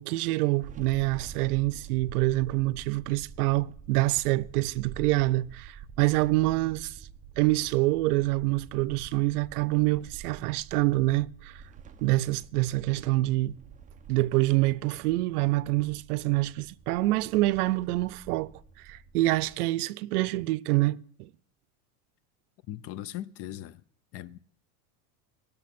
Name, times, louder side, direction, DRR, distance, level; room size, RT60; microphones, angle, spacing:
voice 1, 0.0-7.0 7.4-11.6 12.0-13.6 14.1-18.5 18.8-21.3, right 19 dB, 85° right, 0.6 m, -26 dB
sound 1, 0.6-19.5, right 7 dB, 20° right, 0.6 m, -48 dB
voice 2, 22.7-23.8 24.1-24.4, left 13 dB, 35° left, 0.4 m, -39 dB
18.5 x 6.9 x 4.2 m
supercardioid pair, 125°, 44 cm